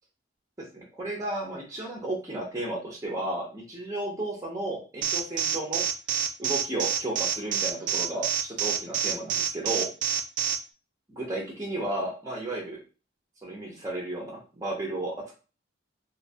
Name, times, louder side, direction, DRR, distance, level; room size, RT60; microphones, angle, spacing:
voice 1, 0.7-5.8 6.4-9.9 11.1-12.8 13.4-15.3, right 1 dB, 15° right, -2 dB, 0.7 m, -33 dB
Alarm, 5.0-10.6, right 9 dB, 40° right, 0.3 m, -26 dB
3.1 x 2.8 x 2.7 m, 0.33 s
head